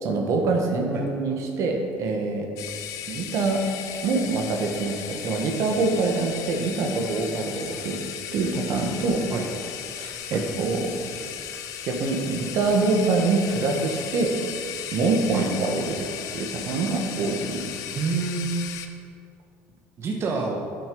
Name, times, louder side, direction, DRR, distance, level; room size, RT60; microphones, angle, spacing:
voice 1, 0.0-2.5 3.1-3.6 4.0-8.0 8.3-9.2 10.0-10.9 11.2-11.3 11.8-14.3 14.9-16.1 16.3-17.7, right 3 dB, 60° right, 2 dB, 1.3 m, -25 dB
sound 1, 2.6-18.9, left 10 dB, 70° left, 0.7 m, -36 dB
voice 2, 17.9-18.7 20.0-20.6, right 4 dB, 45° right, 0 dB, 1.1 m, -27 dB
8.7 x 6.0 x 5.3 m, 2.3 s
supercardioid pair, 85°, 6 cm